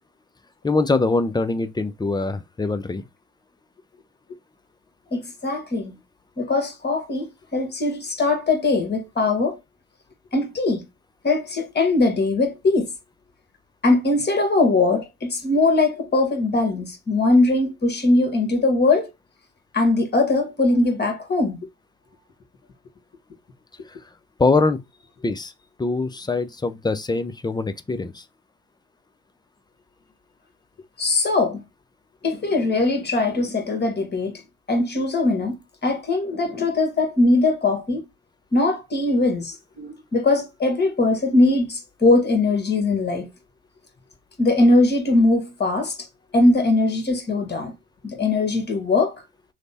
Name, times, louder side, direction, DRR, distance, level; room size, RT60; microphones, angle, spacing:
voice 1, 0.6-3.0 23.9-24.0 24.4-24.8 25.2-25.5 25.8-28.2, left 3 dB, 10° left, 0.4 m, -23 dB
voice 2, 5.1-6.0 6.4-9.6 10.3-10.8 11.2-12.9 13.8-19.1 19.7-21.6 31.0-31.6 32.2-34.4 34.7-35.6 35.8-38.0 38.5-43.3 44.4-46.0 46.3-47.7 48.0-49.2, left 2 dB, 30° left, 1.4 m, -21 dB
3.2 x 2.1 x 4.1 m
hypercardioid pair, 60°, 36 cm